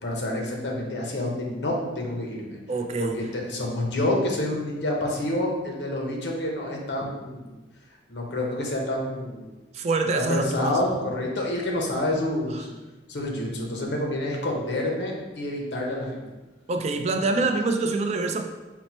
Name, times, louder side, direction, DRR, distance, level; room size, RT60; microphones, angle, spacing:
voice 1, 0.0-2.6 3.0-7.5 8.1-9.5 10.2-12.7 13.1-16.2, left 1 dB, 65° left, -1 dB, 0.8 m, -28 dB
voice 2, 2.7-3.2 9.7-10.8 16.7-18.4, right 3 dB, 35° right, 5 dB, 0.3 m, -25 dB
4.2 x 2.0 x 4.2 m, 1.1 s
head